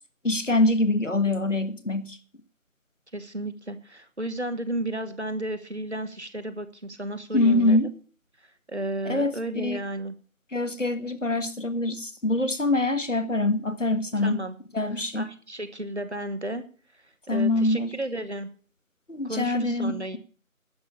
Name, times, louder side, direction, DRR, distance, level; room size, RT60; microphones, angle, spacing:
voice 1, 0.2-2.2 7.3-7.9 9.0-9.8 10.5-14.4 14.7-15.3 17.3-17.9 19.1-19.9, left 2 dB, 60° left, 11 dB, 1.7 m, -24 dB
voice 2, 3.1-7.8 8.4-10.1 14.2-14.6 14.9-16.6 17.3-18.5 19.2-20.2, right 1 dB, 50° right, 10 dB, 1.4 m, -33 dB
11.5 x 7.0 x 8.5 m, 0.41 s
figure-of-eight pair, 175°, 42 cm